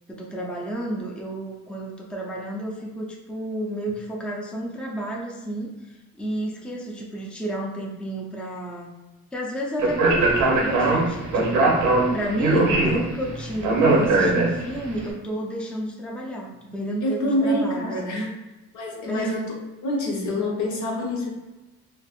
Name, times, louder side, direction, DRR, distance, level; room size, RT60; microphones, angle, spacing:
voice 1, 0.1-8.9 9.3-18.3 19.1-19.4, right 1 dB, 5° left, -2 dB, 0.5 m, -31 dB
Speech, 9.8-14.9, right 2 dB, 85° right, 0.7 m, -20 dB
voice 2, 17.0-18.3 18.7-19.5 19.8-21.3, left 1 dB, 70° left, -2 dB, 0.8 m, -26 dB
3.3 x 2.0 x 2.3 m, 1.1 s
cardioid pair, 90°, 30 cm